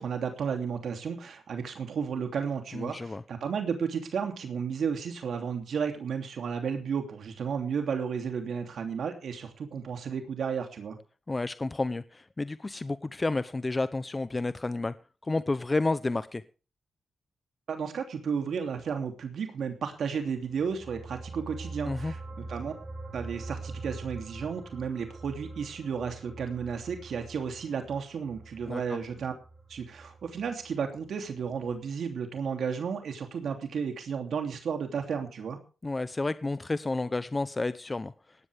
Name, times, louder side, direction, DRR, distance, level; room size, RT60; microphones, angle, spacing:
voice 1, 0.0-11.0 17.7-22.7 23.1-29.3 29.7-35.6, right 6 dB, 70° right, 5 dB, 3.0 m, -33 dB
voice 2, 2.7-3.2 11.3-14.9 15.2-16.4 21.8-22.1 28.7-29.0 35.8-38.1, left 2 dB, 25° left, 14 dB, 0.7 m, -30 dB
sound 1, 20.4-31.1 31.4-31.6, right 3 dB, 35° right, 5.7 m, -44 dB
18.0 x 13.5 x 3.5 m, 0.35 s
cardioid pair, 95°, 0 cm